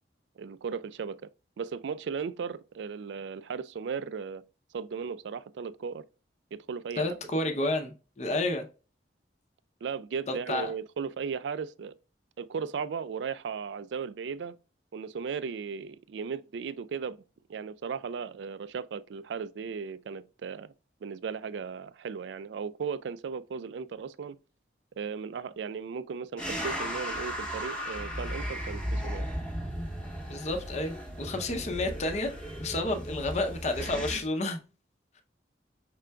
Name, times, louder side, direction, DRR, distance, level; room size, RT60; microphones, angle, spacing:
voice 1, 0.4-1.2 1.6-4.4 4.7-6.0 6.5-7.2 9.8-11.9 12.4-14.6 14.9-17.2 17.5-20.7 21.0-24.4 25.0-29.3, right 6 dB, 85° right, 0.4 m, -36 dB
voice 2, 7.0-8.7 10.3-10.7 30.3-32.3 32.6-34.6, left 2 dB, 40° left, 0.6 m, -30 dB
sound 1, 26.4-34.2, equal, 5° left, 0.8 m, -36 dB
5.5 x 3.7 x 2.2 m
head